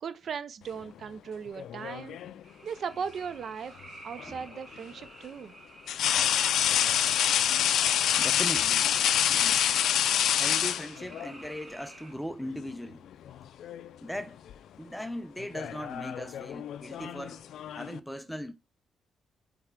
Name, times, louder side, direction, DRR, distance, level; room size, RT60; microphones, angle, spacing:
voice 1, 0.0-2.2 2.6-3.7 4.0-5.5, right 6 dB, 55° right, 0.5 m, -37 dB
sound 1, 1.6-2.4 4.2-4.3 5.9-11.3 12.5-12.7 13.1-13.9 14.2-14.5 15.4-18.0, left 10 dB, 80° left, 0.3 m, -27 dB
sound 2, 2.4-12.1, right 2 dB, 30° right, 2.1 m, -50 dB
voice 2, 8.2-8.9 9.2-9.7 10.4-13.1 14.0-14.4 14.8-17.4 17.7-18.5, equal, ahead, 0.5 m, -39 dB
7.7 x 3.4 x 3.6 m
cardioid pair, 115°, 0 cm